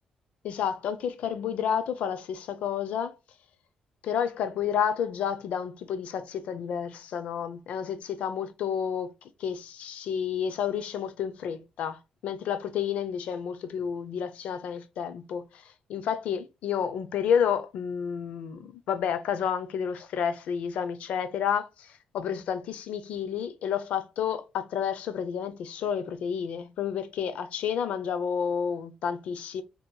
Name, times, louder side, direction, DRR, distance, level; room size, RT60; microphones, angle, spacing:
voice 1, 0.4-3.2 4.0-9.1 9.4-29.6, left 8 dB, 75° left, 0.6 m, -30 dB
5.3 x 2.9 x 2.2 m
cardioid pair, 150°, 2 cm